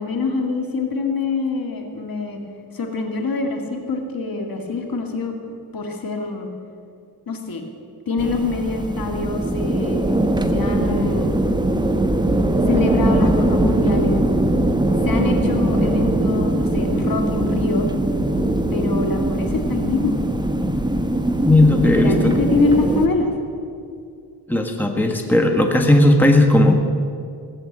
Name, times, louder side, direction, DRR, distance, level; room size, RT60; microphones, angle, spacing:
voice 1, 0.0-2.4 2.7-5.3 5.7-6.5 7.3-7.6 8.1-10.2 10.5-11.3 12.7-14.2 15.0-17.9 18.7-20.1 22.0-23.3, left 3 dB, 60° left, 3 dB, 2.2 m, -24 dB
sound 1, 8.2-23.1, right 1 dB, 10° right, 1.0 m, -21 dB
voice 2, 21.4-22.3 24.5-26.7, left 1 dB, 5° left, 3 dB, 1.4 m, -15 dB
17.0 x 7.8 x 8.7 m, 2.4 s
cardioid pair, 90°, 39 cm